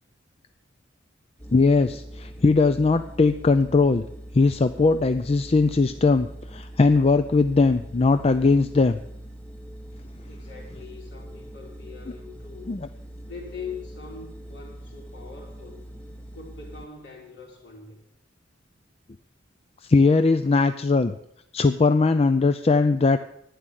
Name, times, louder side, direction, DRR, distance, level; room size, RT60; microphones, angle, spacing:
sound 1, 1.4-16.9, right 1 dB, 5° left, 1.0 m, -42 dB
voice 1, 1.5-4.0 4.3-9.0 12.7-12.8 19.8-21.2 21.5-23.2, left 3 dB, 30° left, 10 dB, 0.4 m, -20 dB
voice 2, 10.2-12.7 13.3-15.8 16.3-18.0, left 5 dB, 60° left, -1 dB, 3.9 m, -42 dB
11.5 x 9.8 x 7.5 m, 0.76 s
head